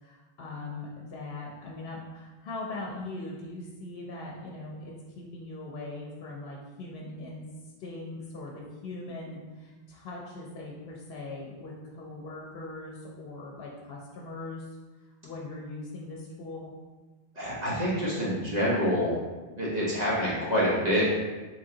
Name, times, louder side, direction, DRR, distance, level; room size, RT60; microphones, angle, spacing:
voice 1, 0.0-7.4 7.8-14.7 15.2-16.7, left 2 dB, 75° left, -2 dB, 0.8 m, -40 dB
voice 2, 17.4-19.1 19.6-21.1, equal, 45° right, -6 dB, 1.0 m, -26 dB
3.2 x 2.6 x 3.7 m, 1.3 s
omnidirectional pair, 1.0 m